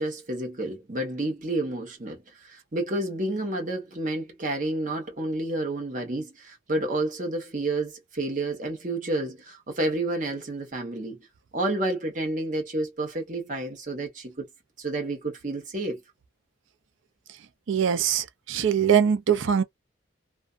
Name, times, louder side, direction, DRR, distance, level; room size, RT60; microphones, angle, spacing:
voice 1, 0.0-11.2 11.5-14.5 14.8-16.0, right 2 dB, 40° right, 1.0 m, -30 dB
voice 2, 17.7-19.6, right 8 dB, 75° right, 0.4 m, -22 dB
2.5 x 2.2 x 2.4 m
head